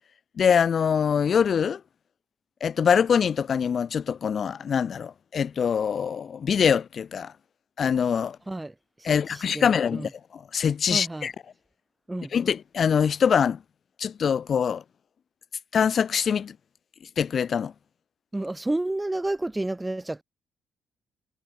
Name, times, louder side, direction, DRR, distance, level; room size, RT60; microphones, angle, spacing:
voice 1, 0.4-1.8 2.6-7.3 7.8-8.4 9.0-11.3 12.3-13.6 14.0-14.8 15.7-16.5 17.2-17.7, left 7 dB, 50° left, 6.0 m, -24 dB
voice 2, 8.5-10.1 10.9-11.3 12.1-12.3 18.3-20.2, right 2 dB, 15° right, 7.0 m, -31 dB
cardioid pair, 90°, 0 cm